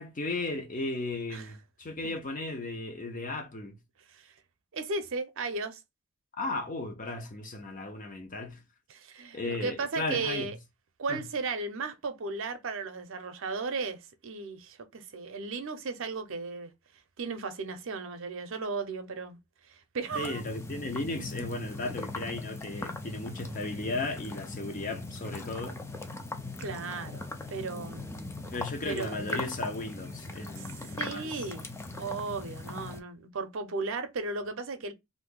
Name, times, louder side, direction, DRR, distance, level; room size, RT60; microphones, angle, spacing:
voice 1, 0.0-3.8 6.4-8.6 9.3-10.5 11.1-11.2 20.1-25.8 28.5-31.3, left 2 dB, 40° left, 0.8 m, -35 dB
voice 2, 4.7-5.8 8.9-10.6 11.0-16.7 17.2-19.4 19.7-20.4 26.6-28.3 28.8-29.4 30.6-31.7 32.0-34.9, right 3 dB, 65° right, 0.6 m, -35 dB
sound 1, 20.1-33.0, left 2 dB, 15° left, 0.4 m, -40 dB
2.7 x 2.5 x 3.7 m
head